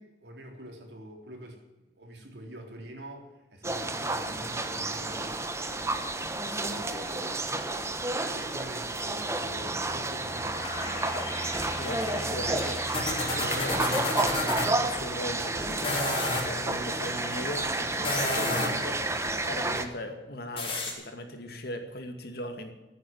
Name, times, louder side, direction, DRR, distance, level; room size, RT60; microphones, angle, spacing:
voice 1, 0.0-1.6 2.0-6.1 6.7-7.4 8.2-11.2, right 1 dB, 70° right, 2 dB, 3.6 m, -45 dB
sound 1, 3.6-19.9, right 2 dB, 15° right, 1.1 m, -31 dB
voice 2, 6.5-6.8 11.1-11.3 11.7-12.9 13.3-22.7, left 1 dB, 60° left, 5 dB, 2.3 m, -39 dB
sound 2, 10.6-14.7 15.7-16.5 17.9-18.9 20.6-20.9, left 2 dB, 35° left, 4.2 m, -32 dB
14.0 x 9.3 x 9.0 m, 1.1 s
head